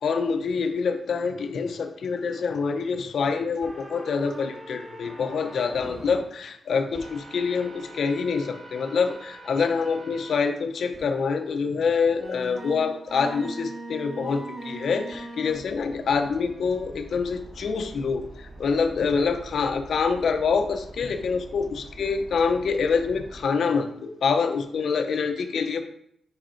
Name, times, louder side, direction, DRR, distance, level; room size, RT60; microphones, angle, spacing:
voice 1, 0.0-25.8, left 5 dB, 60° left, 6 dB, 0.6 m, -26 dB
sound 1, 3.6-6.2 6.9-10.4 10.9-11.0 12.2-23.4, right 1 dB, 30° right, 2.3 m, -42 dB
5.8 x 5.1 x 4.4 m, 0.69 s
wide cardioid pair, 170°, 0 cm